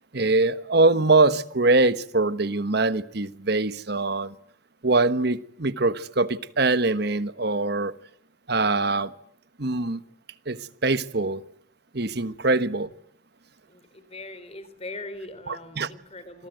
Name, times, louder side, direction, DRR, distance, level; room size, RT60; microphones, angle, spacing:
voice 1, 0.1-4.3 4.8-7.9 8.5-9.1 9.6-10.0 10.5-11.4 11.9-12.9 15.5-15.9, right 3 dB, 55° right, 1.3 m, -23 dB
voice 2, 13.7-16.5, left 2 dB, 30° left, 3.8 m, -41 dB
28.0 x 22.0 x 9.2 m
head